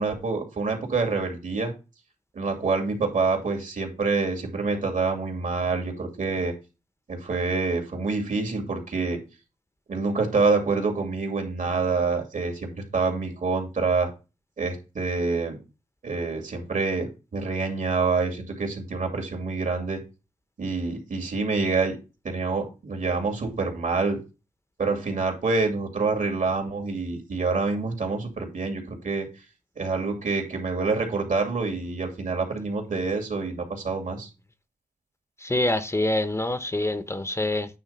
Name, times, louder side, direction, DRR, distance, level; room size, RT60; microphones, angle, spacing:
voice 1, 0.0-1.7 2.3-6.5 7.1-9.2 9.9-14.1 14.6-15.6 16.0-20.0 20.6-22.0 22.2-24.2 24.8-29.3 29.8-34.3, right 4 dB, 70° right, 2.6 m, -26 dB
voice 2, 35.4-37.7, left 1 dB, 20° left, 0.9 m, -25 dB
9.2 x 3.2 x 5.6 m
cardioid pair, 50°, 14 cm